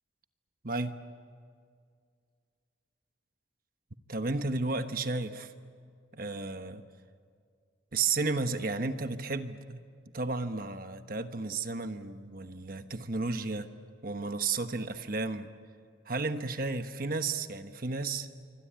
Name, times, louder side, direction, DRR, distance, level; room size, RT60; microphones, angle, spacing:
voice 1, 0.6-1.0 4.1-5.5 6.1-6.8 7.9-9.8 10.1-13.7 14.0-15.5 16.1-18.3, right 3 dB, 50° right, 8 dB, 1.2 m, -33 dB
27.0 x 24.5 x 8.9 m, 2.1 s
head